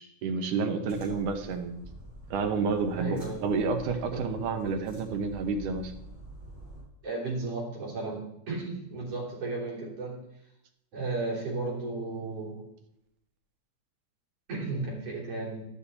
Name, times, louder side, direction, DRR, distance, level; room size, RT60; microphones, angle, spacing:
voice 1, 0.0-1.8 2.3-5.9, right 4 dB, 85° right, 5 dB, 2.8 m, -30 dB
sound 1, 0.8-6.8, right 1 dB, 25° right, 5.3 m, -47 dB
voice 2, 3.0-3.4 4.1-4.2 7.0-8.2 8.5-10.2 10.9-12.6 14.5-15.6, right 3 dB, 50° right, -4 dB, 4.3 m, -34 dB
12.5 x 10.5 x 4.2 m, 0.83 s
omnidirectional pair, 3.5 m